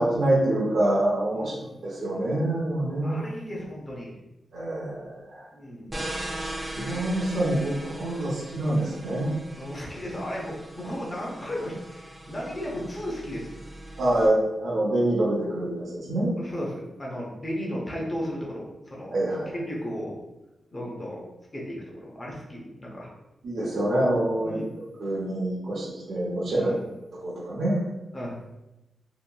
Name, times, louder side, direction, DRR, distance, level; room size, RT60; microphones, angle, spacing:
voice 1, 0.0-1.6 1.8-3.2 4.5-5.5 6.7-9.3 14.0-16.3 19.1-19.5 23.4-24.6 25.0-26.7 27.2-27.8, right 1 dB, 70° right, -5 dB, 0.7 m, -26 dB
voice 2, 1.3-1.8 3.0-4.2 5.5-6.0 9.6-13.5 16.4-19.1 19.5-20.2 20.7-21.2 21.5-23.1 24.4-24.7 26.4-26.8 28.1-28.4, equal, 20° left, -3 dB, 0.7 m, -35 dB
sound 1, 5.9-14.3, right 1 dB, 20° right, 0.5 m, -39 dB
2.8 x 2.7 x 2.2 m, 0.97 s
wide cardioid pair, 130°, 0 cm